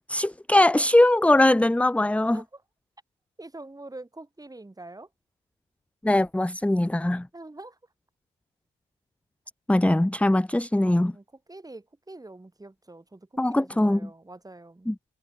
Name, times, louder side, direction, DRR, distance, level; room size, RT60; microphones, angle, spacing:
voice 1, 0.1-2.4 6.0-7.3 9.7-11.1 13.4-14.0 14.9-15.0, left 1 dB, 5° left, 1.0 m, -21 dB
voice 2, 3.4-5.1 7.3-7.8 10.8-14.9, right 2 dB, 15° right, 6.1 m, -45 dB
cardioid pair, 65°, 21 cm